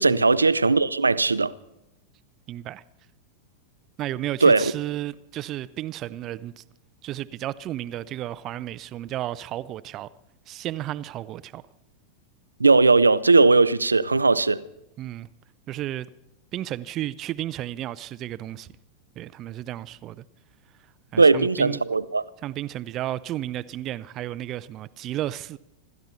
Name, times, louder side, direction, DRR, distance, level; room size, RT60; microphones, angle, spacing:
voice 1, 0.0-1.5 4.4-4.7 12.6-14.6 21.2-22.2, right 3 dB, 80° right, 0.6 m, -18 dB
voice 2, 2.5-2.8 4.0-6.6 7.0-10.1 10.5-11.6 15.0-15.3 15.7-16.1 16.5-18.7 19.2-20.2 21.1-21.8 22.4-25.6, right 13 dB, 35° right, 0.5 m, -33 dB
26.0 x 13.0 x 4.1 m
figure-of-eight pair, 90°, 0 cm